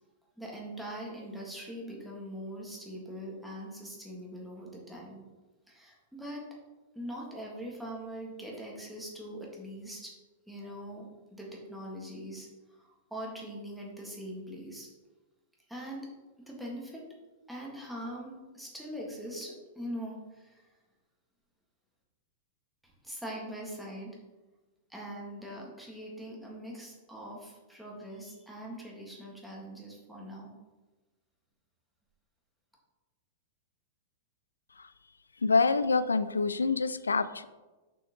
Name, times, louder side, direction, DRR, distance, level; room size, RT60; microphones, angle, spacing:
voice 1, 0.4-5.2 5.7-6.5 6.9-10.1 10.5-14.9 15.7-16.1 16.4-17.0 17.5-20.6 22.8-24.2 24.9-30.5, equal, ahead, -3 dB, 1.8 m, -42 dB
voice 2, 35.4-37.5, left 4 dB, 80° left, 14 dB, 0.3 m, -26 dB
6.3 x 6.1 x 3.1 m, 1.2 s
figure-of-eight pair, 100°, 0 cm